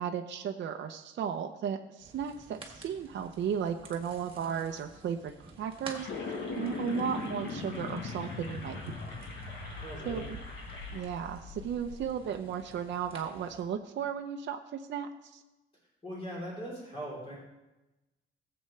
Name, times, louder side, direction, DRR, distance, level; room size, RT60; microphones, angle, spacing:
voice 1, 0.0-6.1 6.6-9.0 10.0-10.4 10.9-15.4, right 8 dB, 60° right, 5 dB, 0.7 m, -35 dB
sound 1, 2.0-13.6, right 3 dB, 25° right, 1.7 m, -52 dB
sound 2, 5.9-11.0, left 1 dB, 60° left, 4.1 m, -47 dB
sound 3, 6.1-12.1, left 4 dB, 90° left, 1.3 m, -40 dB
voice 2, 9.8-10.3 16.0-17.4, equal, 25° left, -5 dB, 3.4 m, -40 dB
17.5 x 7.9 x 3.2 m, 1.0 s
wide cardioid pair, 175°, 21 cm